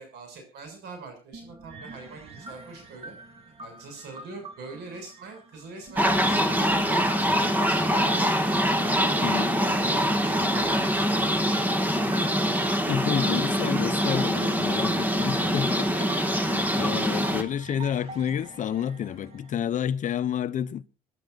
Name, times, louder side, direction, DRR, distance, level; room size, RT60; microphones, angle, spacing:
voice 1, 0.0-3.2 3.6-12.2, right 3 dB, 80° right, 6.9 m, -44 dB
sound 1, 1.3-19.5, right 3 dB, 35° right, 2.9 m, -46 dB
sound 2, 5.9-17.4, equal, 10° right, 1.8 m, -24 dB
voice 2, 12.8-20.8, left 9 dB, 50° left, 0.8 m, -29 dB
26.5 x 11.5 x 2.6 m
cardioid pair, 110°, 17 cm